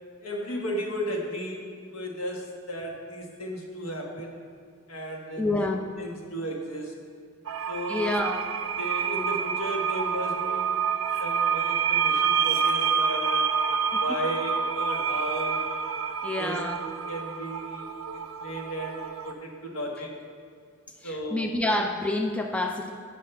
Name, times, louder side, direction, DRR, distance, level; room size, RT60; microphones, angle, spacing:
voice 1, 0.2-4.4 4.9-5.7 6.0-6.9 7.7-8.0 8.8-10.9 11.2-13.6 14.0-15.7 16.4-16.6 17.1-20.2 21.0-21.4, equal, 80° left, 0 dB, 1.4 m, -35 dB
voice 2, 5.4-5.8 7.9-8.5 13.9-14.0 16.2-16.8 21.0-22.9, left 2 dB, 5° left, 3 dB, 0.3 m, -28 dB
sound 1, 7.5-19.3, right 6 dB, 70° right, 0.5 m, -28 dB
8.9 x 5.0 x 5.4 m, 2.2 s
head